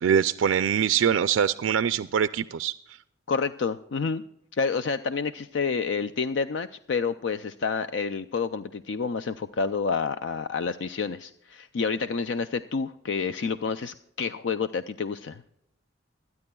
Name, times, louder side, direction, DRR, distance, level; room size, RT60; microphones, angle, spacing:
voice 1, 0.0-2.7, right 8 dB, 85° right, 12 dB, 0.4 m, -23 dB
voice 2, 3.3-4.2 4.5-15.4, left 5 dB, 70° left, 12 dB, 0.4 m, -29 dB
25.5 x 9.7 x 2.3 m, 0.77 s
head